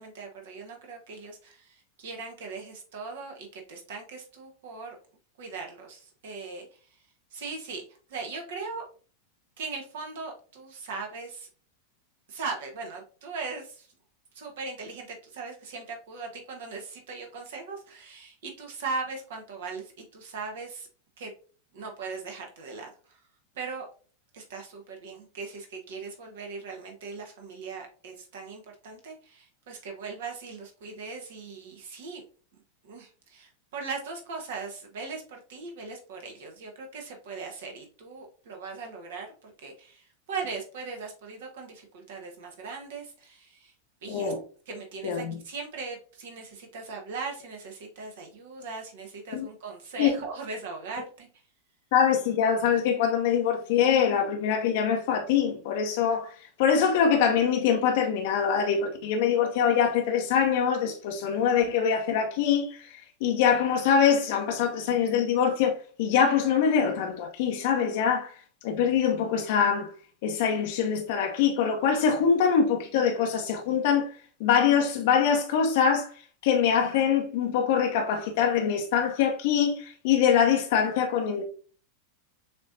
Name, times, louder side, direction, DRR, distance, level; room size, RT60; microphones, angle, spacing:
voice 1, 0.0-5.0 5.4-6.7 7.3-7.8 8.1-8.9 9.6-11.5 12.3-13.9 14.3-20.9 21.2-21.3 21.7-23.2 23.5-23.9 24.3-32.2 32.5-43.7 44.0-44.3 44.7-51.3, right 4 dB, 55° right, 1.1 m, -39 dB
voice 2, 44.1-44.4 45.0-45.4 49.3-49.5 50.0-50.1 51.9-69.9 70.2-74.1 74.4-81.4, left 7 dB, 50° left, 0.7 m, -24 dB
6.6 x 3.0 x 2.6 m
figure-of-eight pair, 90°, 0 cm